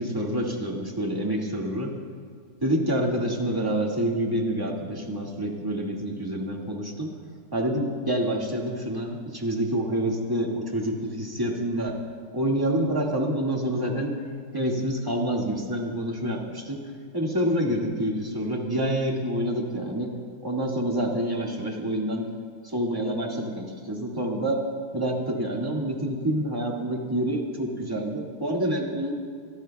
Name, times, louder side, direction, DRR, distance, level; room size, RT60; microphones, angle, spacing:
voice 1, 0.0-2.0 2.6-7.1 7.5-12.0 12.3-14.2 14.5-16.8 17.1-20.1 20.4-22.3 22.6-24.6 24.9-29.1, right 1 dB, 10° right, -2 dB, 1.8 m, -27 dB
26.0 x 18.5 x 2.3 m, 2.1 s
omnidirectional pair, 2.2 m